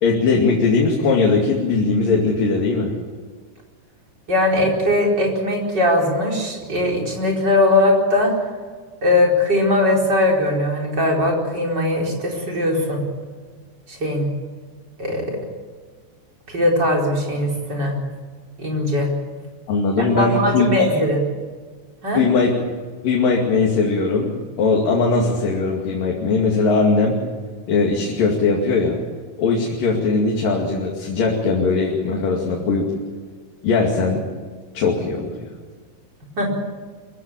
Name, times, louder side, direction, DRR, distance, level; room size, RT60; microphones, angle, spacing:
voice 1, 0.0-2.9 19.7-20.9 22.1-22.5 23.0-24.3 24.6-27.2 27.7-29.0 29.4-32.9 33.6-34.3 34.7-35.5, left 4 dB, 85° left, -1 dB, 4.2 m, -19 dB
voice 2, 4.3-8.3 9.0-13.0 13.9-14.3 15.0-15.4 16.5-17.9 18.6-19.1 20.0-21.2 22.0-22.2 36.4-36.5, left 1 dB, 30° right, -1 dB, 5.0 m, -20 dB
24.5 x 15.5 x 8.6 m, 1.5 s
omnidirectional pair, 3.8 m